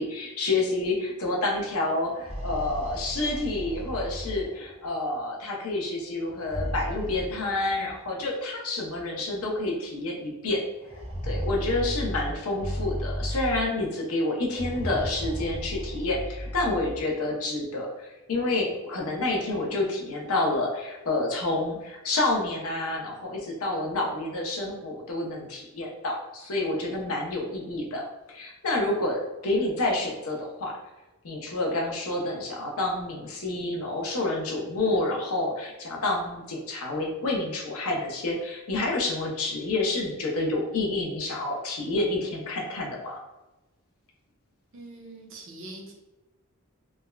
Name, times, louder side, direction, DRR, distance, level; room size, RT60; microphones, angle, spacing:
voice 1, 0.0-10.6 11.2-30.7 31.2-43.2, left 2 dB, 70° left, -1 dB, 0.7 m, -29 dB
sound 1, 2.1-4.9 6.3-8.0 9.0-9.1 9.4-9.5 10.8-13.9 14.5-17.1, equal, 25° right, 0.4 m, -34 dB
voice 2, 44.7-45.9, right 2 dB, 60° right, -1 dB, 0.6 m, -43 dB
3.4 x 2.1 x 2.2 m, 1.0 s
head